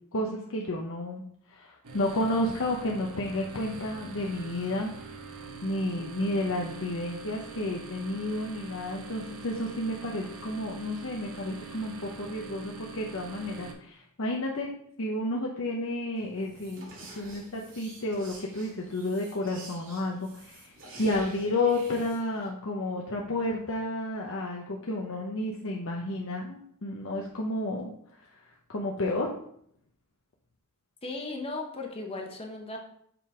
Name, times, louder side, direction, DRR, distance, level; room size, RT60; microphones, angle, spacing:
voice 1, 0.1-1.2 1.5-5.0 5.6-14.7 15.0-20.7 21.0-27.9 28.4-28.5 28.7-29.3, left 1 dB, 65° left, -1 dB, 0.8 m, -31 dB
sound 1, 1.8-13.7, right 4 dB, 80° right, 1.1 m, -44 dB
sound 2, 16.2-22.5, right 2 dB, 60° right, 2.2 m, -49 dB
voice 2, 31.0-32.8, left 2 dB, 25° left, 1 dB, 0.9 m, -36 dB
6.9 x 3.8 x 4.8 m, 0.67 s
head